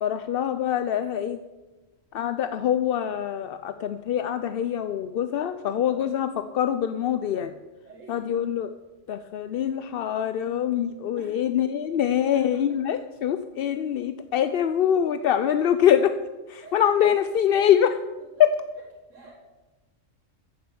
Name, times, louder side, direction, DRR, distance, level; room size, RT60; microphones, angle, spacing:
voice 1, 0.0-1.4 2.1-7.5 8.1-8.7 9.1-16.1 16.5-18.0 18.4-18.5, left 9 dB, 60° left, 10 dB, 0.7 m, -24 dB
voice 2, 5.9-6.2 7.8-8.2 11.2-11.4 11.7-12.5 16.6-16.8 19.1-19.4, right 3 dB, 75° right, -2 dB, 2.1 m, -48 dB
14.5 x 7.6 x 7.2 m, 1.2 s
omnidirectional pair, 1.3 m